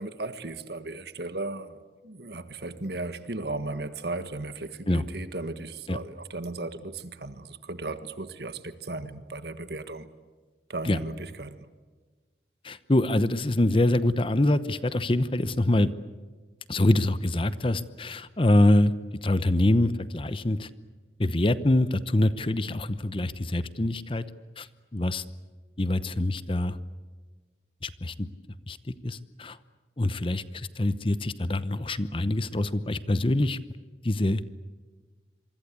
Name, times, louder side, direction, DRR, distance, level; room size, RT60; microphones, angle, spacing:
voice 1, 0.0-1.8 2.0-10.1 10.7-11.7, right 2 dB, 65° right, 1.6 m, -36 dB
voice 2, 12.6-15.9 16.7-18.9 19.2-20.7 21.2-24.2 24.6-24.7 24.9-25.2 25.8-26.8 27.8-28.3 28.7-28.8 29.0-29.6 30.0-33.6 34.0-34.4, left 1 dB, 30° left, 0.8 m, -25 dB
26.5 x 24.0 x 8.3 m
head